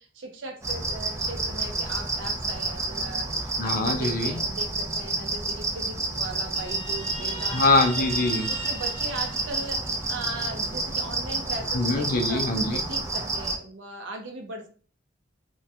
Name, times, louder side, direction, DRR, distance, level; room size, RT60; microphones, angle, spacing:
voice 1, 0.0-7.6 8.0-8.1 8.5-12.4 12.7-14.7, right 2 dB, 85° right, 3 dB, 0.5 m, -38 dB
sound 1, 0.6-13.6, right 3 dB, 15° right, 0.4 m, -30 dB
voice 2, 3.6-4.4 7.5-8.5 11.7-12.8, left 2 dB, 45° left, 4 dB, 0.4 m, -23 dB
Guitar, 6.5-10.1, right 1 dB, 30° left, 0.8 m, -39 dB
2.2 x 2.1 x 2.7 m, 0.40 s
head